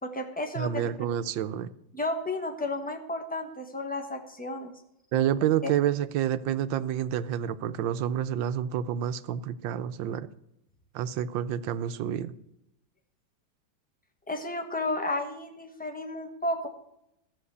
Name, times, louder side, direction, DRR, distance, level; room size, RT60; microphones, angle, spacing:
voice 1, 0.0-0.9 1.9-4.7 14.3-16.7, left 2 dB, 5° left, 4 dB, 1.1 m, -32 dB
voice 2, 0.6-1.7 5.1-10.3 10.9-12.3, right 10 dB, 80° right, 12 dB, 1.4 m, -28 dB
13.5 x 6.8 x 8.3 m, 0.81 s
omnidirectional pair, 2.1 m